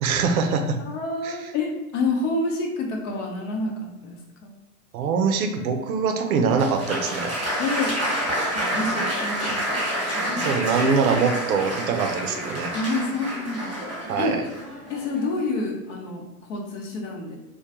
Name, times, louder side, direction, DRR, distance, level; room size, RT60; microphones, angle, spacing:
voice 1, 0.0-0.8 1.2-1.4 4.9-7.3 10.3-12.7 14.1-14.4, right 5 dB, 75° right, 5 dB, 0.5 m, -23 dB
voice 2, 0.8-4.5 7.6-8.0 8.5-9.8 10.2-10.5 12.7-13.8 14.2-14.3 14.9-17.4, left 3 dB, 55° left, 1 dB, 0.8 m, -28 dB
Applause, 6.5-15.4, equal, 15° right, 1.1 m, -28 dB
2.2 x 2.2 x 2.8 m, 0.94 s
hypercardioid pair, 100°, 44 cm